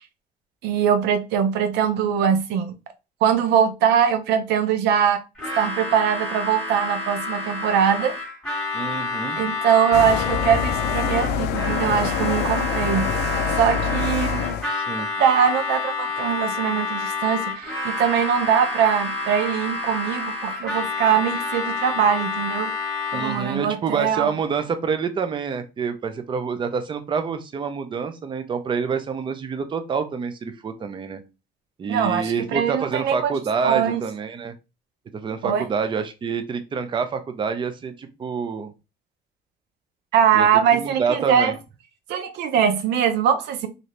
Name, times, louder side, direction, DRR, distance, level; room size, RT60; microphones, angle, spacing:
voice 1, 0.6-2.8 3.2-5.2 5.6-8.2 9.4-13.1 13.5-14.6 15.2-22.7 23.1-24.3 31.9-33.3 33.6-34.0 35.4-35.6 40.1-41.5 42.1-43.7, right 8 dB, 90° right, 0.6 m, -22 dB
Harmonica, 5.4-23.6, left 3 dB, 5° left, 1.6 m, -29 dB
voice 2, 8.7-9.4 14.7-15.1 23.1-31.2 31.8-34.5 35.1-38.7 40.3-40.5 40.7-41.5, right 5 dB, 30° right, 0.5 m, -27 dB
sound 1, 9.9-14.7, left 7 dB, 80° left, 0.4 m, -25 dB
2.6 x 2.6 x 3.1 m
cardioid pair, 110°, 17 cm